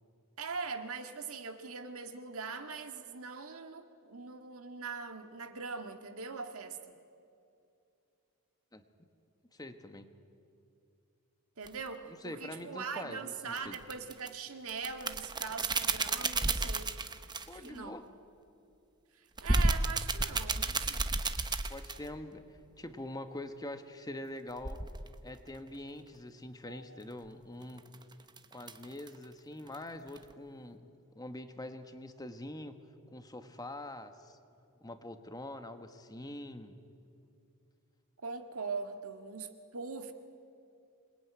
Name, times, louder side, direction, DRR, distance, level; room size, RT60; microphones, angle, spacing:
voice 1, 0.4-7.0 11.6-16.9 17.5-18.0 19.2-21.1 26.6-27.0 38.2-40.1, right 5 dB, 70° right, 6 dB, 1.8 m, -41 dB
voice 2, 9.5-10.1 12.1-13.8 17.5-18.0 21.7-24.8 25.2-27.8 28.5-32.8 33.1-34.4 34.8-36.8, left 1 dB, 15° left, 8 dB, 1.3 m, -44 dB
sound 1, 11.7-11.8 13.6-14.3 14.7-17.7 19.4-22.1 24.6-25.1 27.6-29.2 29.7-29.8 30.1-30.3, right 3 dB, 20° right, 1.0 m, -32 dB
26.5 x 21.0 x 9.5 m, 2.5 s
head